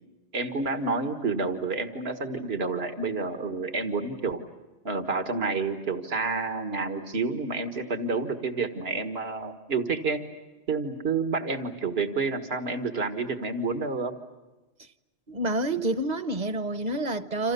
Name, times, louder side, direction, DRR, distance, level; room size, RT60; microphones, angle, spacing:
voice 1, 0.3-4.4 4.8-10.2 10.7-14.1, right 4 dB, 75° right, 1.9 m, -29 dB
voice 2, 15.3-17.5, right 2 dB, 45° right, 1.1 m, -28 dB
29.0 x 27.5 x 6.8 m
omnidirectional pair, 1.0 m